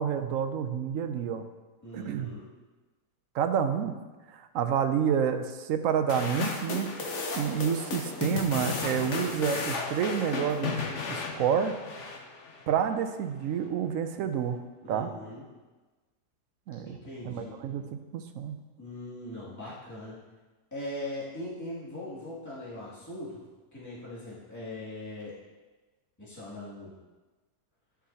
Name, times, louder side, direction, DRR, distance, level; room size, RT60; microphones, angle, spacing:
voice 1, 0.0-1.4 1.9-2.3 3.3-4.0 4.3-6.9 7.3-12.1 12.7-14.6 14.9-15.1 16.7-16.9 17.2-18.6, right 8 dB, 70° right, 8 dB, 0.9 m, -29 dB
voice 2, 1.8-2.5 14.8-15.4 16.8-17.5 18.8-20.2 20.7-23.4 23.7-25.4 26.2-26.9, left 1 dB, 10° left, -9 dB, 2.2 m, -40 dB
sound 1, 6.1-12.6, left 4 dB, 55° left, 1.0 m, -34 dB
11.0 x 6.2 x 2.8 m, 1.2 s
omnidirectional pair, 1.7 m